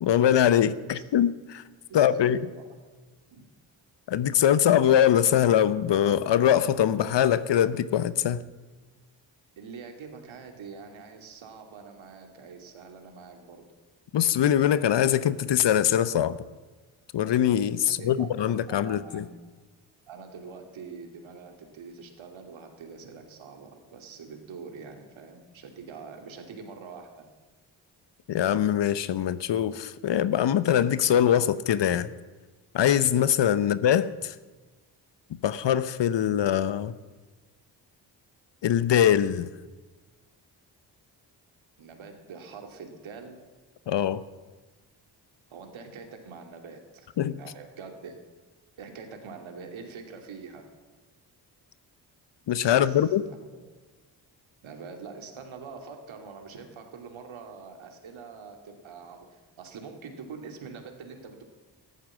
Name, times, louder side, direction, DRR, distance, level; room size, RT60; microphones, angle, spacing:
voice 1, 0.0-1.6 1.9-2.4 4.1-8.4 14.1-16.3 17.1-19.2 28.3-32.1 32.7-34.3 35.4-36.9 38.6-39.5 43.9-44.2 47.2-47.4 52.5-53.2, left 10 dB, 60° left, 0.9 m, -23 dB
voice 2, 1.9-2.6 3.3-3.4 7.0-7.2 9.6-13.6 17.8-18.3 18.7-19.4 20.1-27.3 33.6-33.7 41.8-43.4 45.5-47.1 47.4-48.2 48.8-50.6 52.7-53.6 54.6-61.4, right 5 dB, 70° right, 2.7 m, -44 dB
14.0 x 11.5 x 7.4 m
hypercardioid pair, 40°, 49 cm